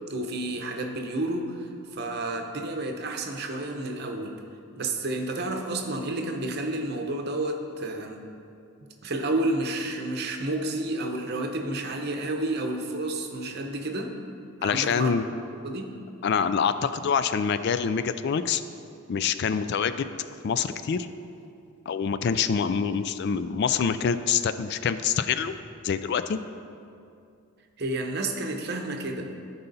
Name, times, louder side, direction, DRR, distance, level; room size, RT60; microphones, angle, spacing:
voice 1, 0.0-4.4 4.8-8.2 9.0-14.2 14.6-15.1 15.6-15.9 27.8-29.3, right 2 dB, 50° right, 3 dB, 0.9 m, -30 dB
voice 2, 14.6-15.3 16.2-18.6 19.1-20.1 20.4-21.1 21.9-25.5 25.8-26.4, left 6 dB, 55° left, 12 dB, 0.3 m, -25 dB
13.5 x 5.5 x 4.0 m, 2.5 s
head